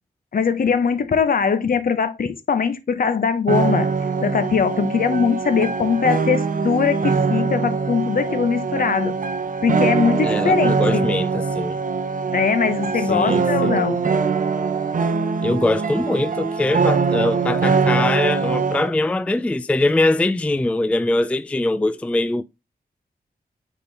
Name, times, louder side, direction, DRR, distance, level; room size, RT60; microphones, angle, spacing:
voice 1, 0.3-3.9 4.2-9.1 9.6-11.1 12.3-14.0, left 6 dB, 60° left, 1.2 m, -21 dB
sound 1, 3.5-18.9, right 5 dB, 55° right, 0.8 m, -22 dB
voice 2, 10.2-11.8 13.1-13.9 15.4-22.4, left 2 dB, 10° left, 0.3 m, -22 dB
8.9 x 4.0 x 4.2 m
wide cardioid pair, 150°, 16 cm